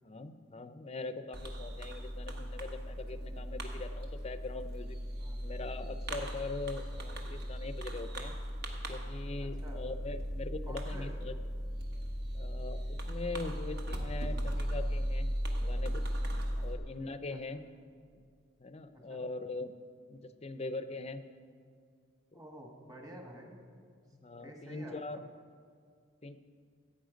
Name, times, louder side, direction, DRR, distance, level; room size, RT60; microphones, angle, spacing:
voice 1, 0.0-5.0 5.4-8.3 8.9-11.4 12.3-15.3 15.6-16.0 16.6-17.6 18.6-19.7 20.1-21.2 22.3-22.4 24.1-25.2 26.2-26.4, left 3 dB, 30° left, 11 dB, 0.5 m, -42 dB
Fireworks, 1.3-16.8, equal, 55° right, 1.4 m, -37 dB
voice 2, 9.4-9.8 10.7-11.1 16.5-16.6 17.3-17.6 18.9-19.2 22.3-23.6 24.4-25.0, right 1 dB, 20° right, 1 dB, 1.5 m, -50 dB
16.5 x 8.7 x 5.1 m, 2.2 s
head